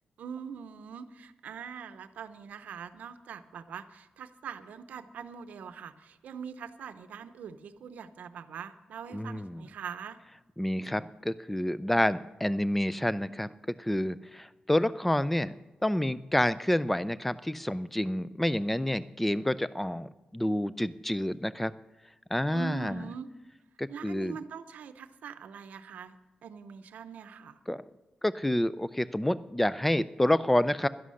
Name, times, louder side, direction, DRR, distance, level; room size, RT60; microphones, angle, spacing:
voice 1, 0.2-10.2 22.5-23.3 23.9-27.6, right 7 dB, 80° right, 11 dB, 0.7 m, -43 dB
voice 2, 9.1-9.6 10.6-15.5 15.8-21.7 22.3-23.1 23.8-24.4 27.7-27.8 28.2-30.9, left 1 dB, 5° left, 17 dB, 0.4 m, -28 dB
11.5 x 11.0 x 6.4 m, 1.1 s
wide cardioid pair, 150°, 3 cm